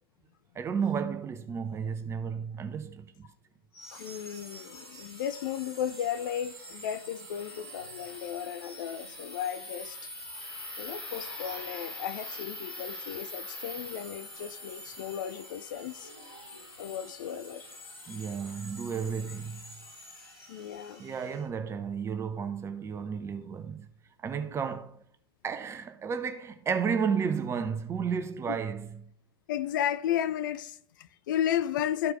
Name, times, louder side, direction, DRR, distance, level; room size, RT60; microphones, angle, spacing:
voice 1, 0.5-3.3 18.1-19.6 21.0-23.9 24.2-25.0 25.4-29.1, right 6 dB, 20° right, 0.8 m, -32 dB
sound 1, 3.7-21.4, left 1 dB, 80° left, 2.7 m, -44 dB
voice 2, 3.9-10.1 10.8-16.1 16.8-17.8 18.1-18.2 20.5-21.0 29.5-32.1, left 10 dB, 55° left, 0.5 m, -34 dB
13.5 x 4.7 x 3.1 m
figure-of-eight pair, 90°, 13 cm